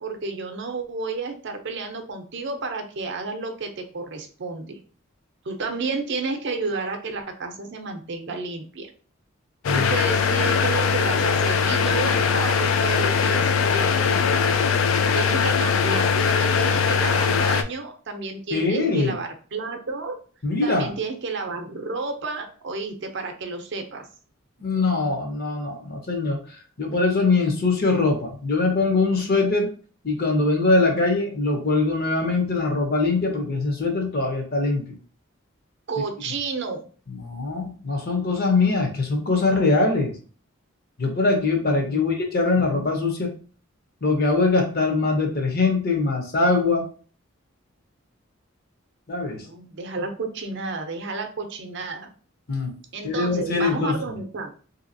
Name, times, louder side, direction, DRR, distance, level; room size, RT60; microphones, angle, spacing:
voice 1, 0.0-4.8 5.4-8.9 9.7-14.1 15.1-20.2 20.6-24.1 35.9-36.8 41.7-42.0 49.3-52.1 52.9-54.5, right 3 dB, 60° right, 5 dB, 0.6 m, -31 dB
sound 1, 9.6-17.6, left 6 dB, 75° left, 0.3 m, -21 dB
voice 2, 18.5-19.1 20.4-20.9 24.6-26.4 26.8-29.7 30.0-35.0 37.1-40.1 41.0-43.3 44.0-46.9 49.1-49.4 52.5-52.7 53.0-54.0, left 3 dB, 50° left, 3 dB, 0.8 m, -22 dB
3.3 x 2.8 x 2.6 m, 0.40 s
head